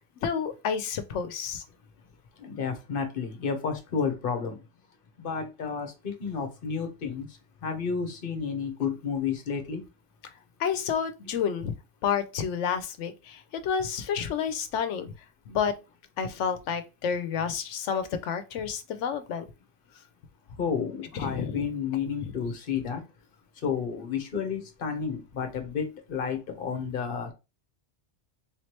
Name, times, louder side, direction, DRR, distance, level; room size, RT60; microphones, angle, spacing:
voice 1, 0.2-1.6 10.6-11.7 12.0-15.1 15.5-15.7 16.2-19.4 21.2-21.6, left 7 dB, 85° left, 0.9 m, -30 dB
voice 2, 2.4-4.6 5.2-7.3 7.6-9.8 20.6-23.0 23.6-27.3, left 6 dB, 50° left, 1.0 m, -31 dB
3.6 x 3.1 x 2.9 m
omnidirectional pair, 1.2 m